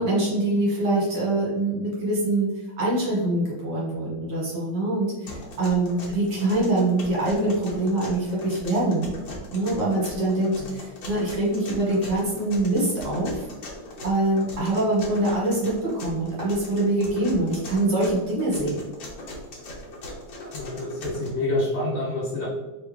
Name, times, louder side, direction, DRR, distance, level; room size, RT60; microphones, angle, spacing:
voice 1, 0.0-9.1 9.5-13.5 14.0-18.8, right 2 dB, 55° right, -6 dB, 2.0 m, -24 dB
sound 1, 5.3-21.3, left 1 dB, 55° left, 1.7 m, -39 dB
voice 2, 20.4-22.5, left 2 dB, 80° left, -6 dB, 1.2 m, -28 dB
4.6 x 3.4 x 3.3 m, 1.1 s
omnidirectional pair, 3.6 m